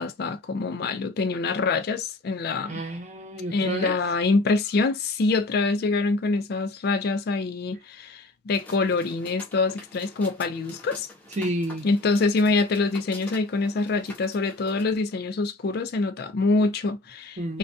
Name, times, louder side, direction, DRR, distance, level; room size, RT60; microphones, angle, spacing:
voice 1, 0.0-2.8 3.5-11.1 11.8-17.6, left 3 dB, 50° left, 0.4 m, -25 dB
voice 2, 2.7-4.0 11.4-11.9 17.4-17.6, right 1 dB, 35° right, 0.7 m, -30 dB
sound 1, 8.5-14.8, left 1 dB, 10° left, 0.6 m, -46 dB
2.3 x 2.2 x 2.5 m
head